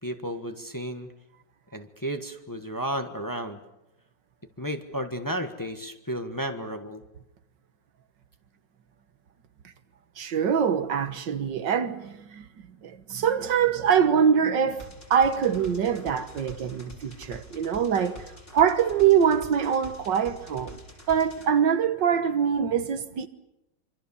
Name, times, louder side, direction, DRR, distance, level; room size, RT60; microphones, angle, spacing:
voice 1, 0.0-1.1 1.7-3.6 4.6-7.0, equal, 10° left, 1.4 m, -33 dB
voice 2, 10.2-12.5 12.8-18.3 18.5-20.8 21.1-23.3, right 7 dB, 80° right, 2.0 m, -24 dB
sound 1, 14.8-21.5, equal, 30° left, 3.9 m, -46 dB
26.5 x 25.0 x 7.2 m
omnidirectional pair, 1.9 m